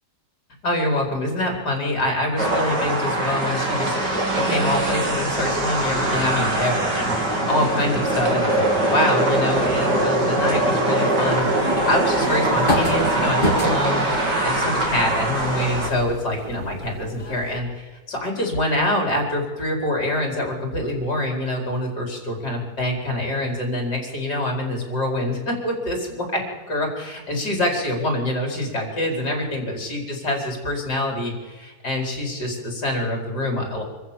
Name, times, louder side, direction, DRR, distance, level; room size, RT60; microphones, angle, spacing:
voice 1, 0.6-26.4 26.7-33.8, left 1 dB, 65° left, 1 dB, 5.2 m, -25 dB
sound 1, 2.4-15.9, right 2 dB, 70° right, 3.8 m, -22 dB
sound 2, 11.3-17.6, left 1 dB, 25° left, 3.3 m, -31 dB
25.5 x 14.5 x 7.2 m, 1.3 s
omnidirectional pair, 1.9 m